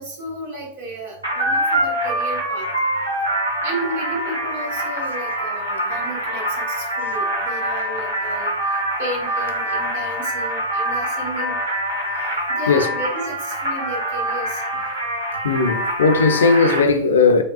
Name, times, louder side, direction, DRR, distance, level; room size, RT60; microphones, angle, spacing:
voice 1, 0.0-2.7 3.6-11.6 12.5-14.6, right 2 dB, 60° right, 1.2 m, -33 dB
sound 1, 1.2-16.8, right 1 dB, 80° right, 0.9 m, -24 dB
voice 2, 15.4-17.4, left 4 dB, 65° left, 0.4 m, -17 dB
4.8 x 2.3 x 2.3 m
figure-of-eight pair, 90°, 0 cm